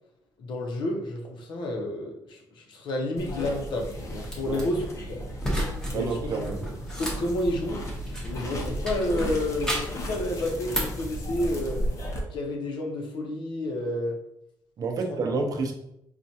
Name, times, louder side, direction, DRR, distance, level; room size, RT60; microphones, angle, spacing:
voice 1, 0.4-5.3 5.9-6.3 7.0-7.8 8.3-11.8 12.3-14.2, left 1 dB, 75° left, 1 dB, 0.8 m, -30 dB
sound 1, 3.2-12.2, equal, 40° left, 0.7 m, -34 dB
sound 2, 4.3-4.6 5.4-6.0 6.3-8.4 8.8-10.0 10.4-11.0, equal, 10° left, 0.8 m, -32 dB
voice 2, 5.9-6.6 14.8-15.7, right 3 dB, 50° right, 2 dB, 0.6 m, -29 dB
4.4 x 2.4 x 2.7 m, 0.77 s
cardioid pair, 135°, 8 cm